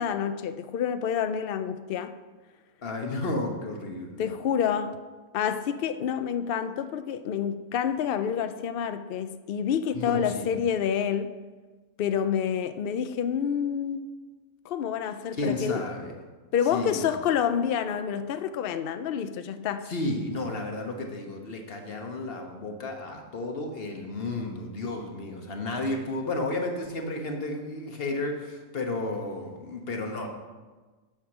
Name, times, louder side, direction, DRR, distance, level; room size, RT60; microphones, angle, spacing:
voice 1, 0.0-2.1 4.2-5.0 5.3-11.3 12.0-14.1 14.7-15.9 16.5-19.9, left 8 dB, 90° left, 0.5 m, -28 dB
voice 2, 2.8-4.3 9.9-10.5 15.3-16.2 16.7-17.1 19.9-30.3, left 2 dB, 45° left, 1.3 m, -32 dB
8.7 x 6.6 x 6.0 m
omnidirectional pair, 1.6 m